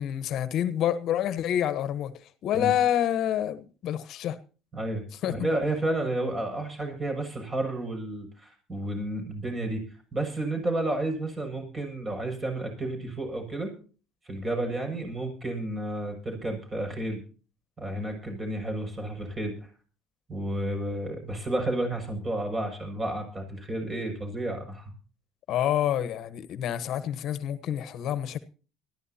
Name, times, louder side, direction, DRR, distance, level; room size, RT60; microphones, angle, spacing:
voice 1, 0.0-2.1 2.4-4.4 5.2-5.3 25.5-28.4, left 11 dB, 60° left, 1.2 m, -27 dB
voice 2, 4.7-9.8 10.1-13.7 14.2-17.2 17.8-19.5 20.3-24.9, right 1 dB, 25° right, 6.7 m, -31 dB
21.5 x 15.0 x 2.9 m
supercardioid pair, 80°, 0 cm